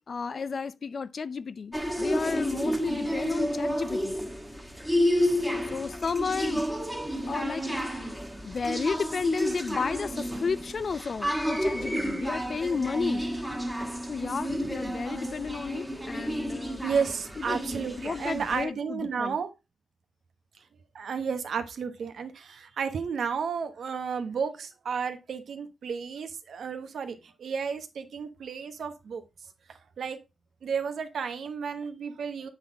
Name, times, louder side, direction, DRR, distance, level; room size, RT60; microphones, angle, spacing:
voice 1, 0.1-4.2 5.7-6.6 7.3-8.2 8.4-13.3 14.1-16.9 17.4-17.6 18.0-19.4, left 5 dB, 50° left, 0.4 m, -32 dB
sound 1, 1.7-18.7, equal, ahead, 1.5 m, -31 dB
voice 2, 16.8-19.5 20.9-29.2 29.7-30.2 30.6-32.5, right 6 dB, 70° right, 1.1 m, -32 dB
8.0 x 4.1 x 4.0 m
cardioid pair, 90°, 0 cm